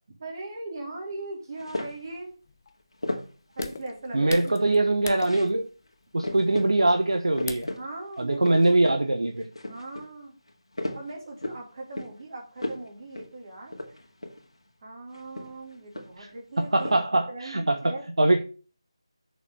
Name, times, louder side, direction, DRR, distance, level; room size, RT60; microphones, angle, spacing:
voice 1, 0.2-2.3 3.6-4.5 7.8-8.8 9.7-10.3 10.9-14.0 14.8-18.0, right 2 dB, 40° right, 0 dB, 2.9 m, -39 dB
sound 1, 1.6-2.1 3.0-3.8 4.1-4.8 5.2-5.6 5.9-6.0 6.2-6.7 7.1-7.8 8.1-9.0 9.4-10.1 10.5-11.6 11.9-12.2 12.6-12.9 13.1-13.3 13.7-14.5 15.1-16.3 16.6-17.0, left 1 dB, 75° left, 2.2 m, -35 dB
sound 2, 1.9-7.9, left 4 dB, 35° left, 0.7 m, -42 dB
voice 2, 4.1-5.7 6.1-7.7 8.2-9.5 16.6-18.5, right 2 dB, 70° right, 5 dB, 1.1 m, -23 dB
6.6 x 5.4 x 6.5 m, 0.37 s
figure-of-eight pair, 160°, 3 cm